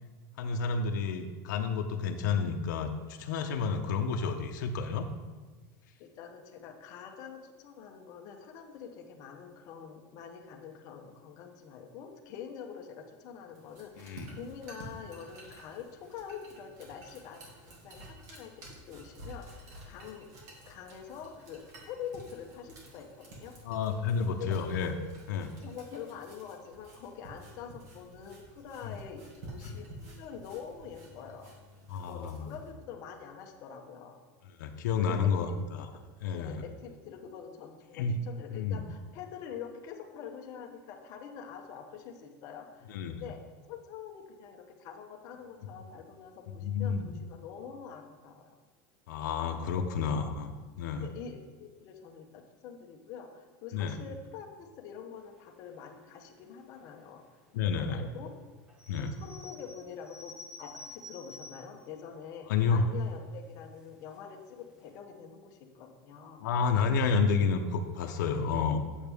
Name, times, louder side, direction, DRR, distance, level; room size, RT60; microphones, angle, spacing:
voice 1, 0.4-5.0 14.0-14.3 23.6-24.9 25.3-25.5 28.8-29.0 29.6-29.8 31.9-32.5 34.6-35.9 36.2-36.6 37.9-38.2 38.5-38.8 42.9-43.2 46.5-47.1 49.1-51.1 53.7-54.0 57.5-58.1 58.9-59.1 62.5-62.8 66.4-68.8, left 5 dB, 85° left, 4 dB, 0.7 m, -30 dB
voice 2, 6.0-20.3 20.7-23.6 24.1-24.6 25.4-31.5 31.9-34.2 35.1-35.5 36.3-43.4 43.7-48.5 49.7-50.0 51.0-57.4 57.7-58.4 58.9-66.4 67.1-67.2, left 7 dB, 35° left, 2 dB, 0.8 m, -45 dB
sound 1, 13.5-32.7, right 1 dB, 75° right, 2.3 m, -51 dB
sound 2, 58.7-61.9 62.4-62.5 62.7-63.2 63.8-64.2 64.6-64.7 64.8-64.9, left 2 dB, 5° right, 0.6 m, -50 dB
8.4 x 7.2 x 3.5 m, 1.3 s
supercardioid pair, 175°, 10 cm